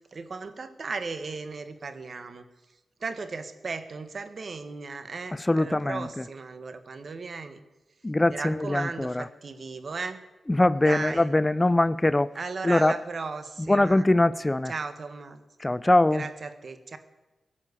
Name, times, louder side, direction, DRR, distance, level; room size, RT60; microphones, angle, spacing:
voice 1, 0.1-2.5 3.0-7.6 8.3-10.2 10.8-11.3 12.3-14.1 14.6-15.5 16.0-17.0, right 4 dB, 60° right, 10 dB, 1.4 m, -36 dB
voice 2, 5.4-6.3 8.0-9.3 10.5-12.3 12.6-12.9 13.6-14.7 15.6-16.3, left 2 dB, 25° left, 18 dB, 0.5 m, -22 dB
17.0 x 7.4 x 9.7 m, 1.1 s
cardioid pair, 50°, 0 cm